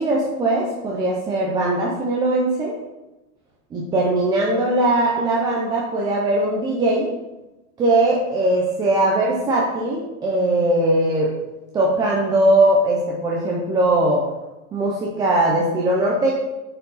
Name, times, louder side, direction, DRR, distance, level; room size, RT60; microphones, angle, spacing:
voice 1, 0.0-2.7 3.7-7.1 7.8-11.3 11.7-14.2 14.7-16.3, right 1 dB, 10° right, -3 dB, 0.4 m, -20 dB
8.6 x 4.6 x 4.0 m, 1.0 s
supercardioid pair, 155°, 41 cm